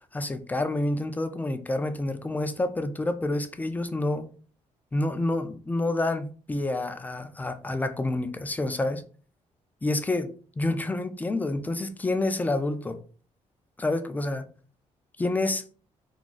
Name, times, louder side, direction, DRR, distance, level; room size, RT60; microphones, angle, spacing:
voice 1, 0.1-4.3 4.9-9.0 9.8-13.0 13.8-14.5 15.2-15.6, left 2 dB, 15° left, 0.3 m, -28 dB
2.4 x 2.3 x 3.8 m
cardioid pair, 110°, 13 cm